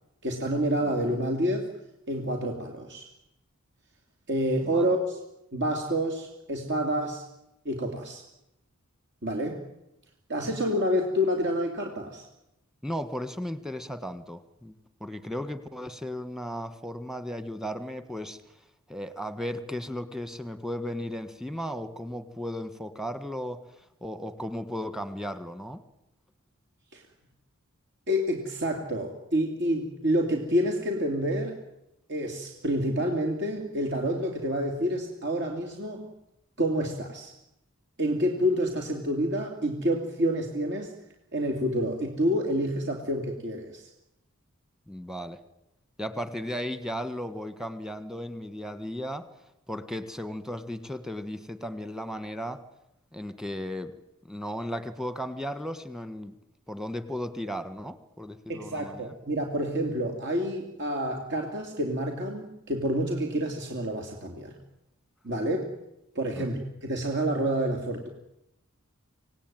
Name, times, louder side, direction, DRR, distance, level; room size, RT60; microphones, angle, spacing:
voice 1, 0.2-1.7 2.1-3.1 4.3-5.2 5.5-7.2 7.6-8.2 9.2-9.6 10.3-12.3 26.9-27.0 28.1-31.6 32.1-36.1 36.6-37.3 38.0-40.9 41.3-43.9 58.5-64.5 65.2-65.7 66.1-68.1, equal, 55° right, 2 dB, 3.0 m, -28 dB
voice 2, 12.8-18.4 18.9-23.6 24.0-25.8 44.9-45.4 46.0-49.3 49.7-52.6 53.1-53.9 54.2-56.4 56.7-59.1 66.4-66.5, equal, ahead, 12 dB, 1.5 m, -35 dB
26.5 x 18.0 x 9.2 m, 0.87 s
head